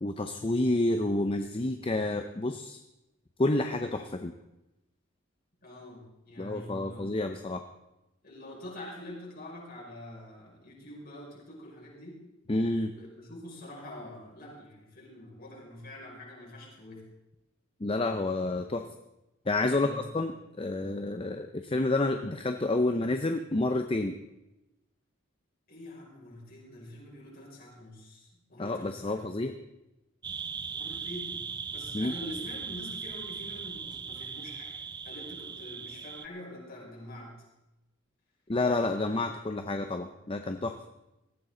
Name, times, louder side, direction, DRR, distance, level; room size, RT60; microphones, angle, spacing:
voice 1, 0.0-2.8 3.4-4.3 6.4-7.6 12.5-12.9 17.8-18.8 19.5-24.1 28.6-29.6 31.9-32.1 38.5-40.7, left 2 dB, 25° left, 6 dB, 0.7 m, -29 dB
voice 2, 5.6-7.3 8.2-12.2 12.9-17.0 19.7-20.0 25.7-29.2 30.7-34.7 35.0-37.3, left 1 dB, 50° left, -3 dB, 5.9 m, -45 dB
sound 1, 30.2-36.3, right 6 dB, 20° right, 0.4 m, -39 dB
18.5 x 14.5 x 3.9 m, 0.95 s
head